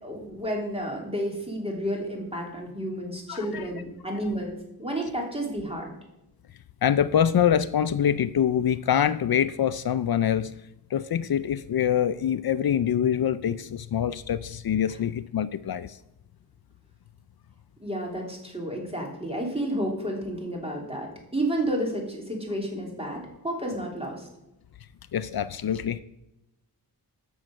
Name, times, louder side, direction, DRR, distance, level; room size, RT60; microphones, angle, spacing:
voice 1, 0.0-5.9 17.8-24.3, right 1 dB, 15° right, 0 dB, 3.2 m, -31 dB
voice 2, 3.3-3.7 6.8-10.5 10.9-16.0 25.1-26.0, left 9 dB, 65° left, 13 dB, 0.5 m, -25 dB
9.3 x 6.4 x 7.6 m, 0.90 s
wide cardioid pair, 90°, 39 cm